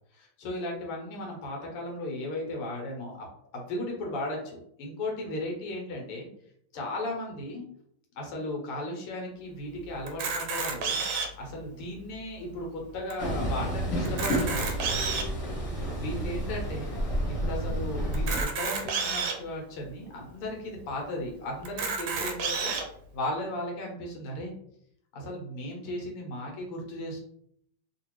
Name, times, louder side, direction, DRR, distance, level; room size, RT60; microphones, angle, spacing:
voice 1, 0.1-3.2 3.5-6.3 6.7-7.7 8.2-11.0 11.4-14.7 15.9-16.9 17.3-22.7 23.1-24.5 25.1-27.2, left 1 dB, 85° left, 0 dB, 1.9 m, -36 dB
Camera, 10.1-11.5 12.1-12.2 12.4-12.6 13.1-13.2 14.0-15.4 16.0-16.1 18.1-19.4 20.1-20.2 20.5-20.6 21.6-22.8, right 5 dB, 75° right, 1.3 m, -30 dB
Train, 13.2-18.4, right 1 dB, 50° left, 1.2 m, -30 dB
3.8 x 2.5 x 3.0 m, 0.68 s
omnidirectional pair, 2.3 m